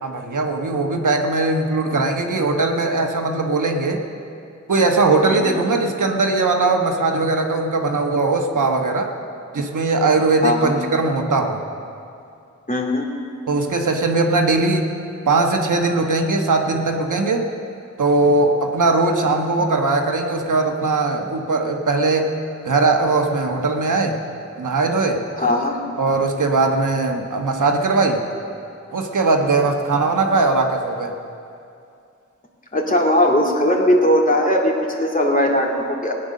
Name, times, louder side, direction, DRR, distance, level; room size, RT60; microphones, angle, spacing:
voice 1, 0.0-4.0 4.7-9.1 9.5-11.6 13.5-14.9 15.3-17.4 18.0-22.3 22.6-24.2 24.6-25.2 26.0-28.2 28.9-31.1, right 3 dB, 80° right, 2 dB, 1.3 m, -19 dB
voice 2, 5.2-5.6 10.4-10.7 12.7-13.1 25.4-25.8 32.7-36.1, left 1 dB, 25° left, -1 dB, 2.4 m, -19 dB
17.5 x 9.1 x 6.5 m, 2.5 s
cardioid pair, 55°, 30 cm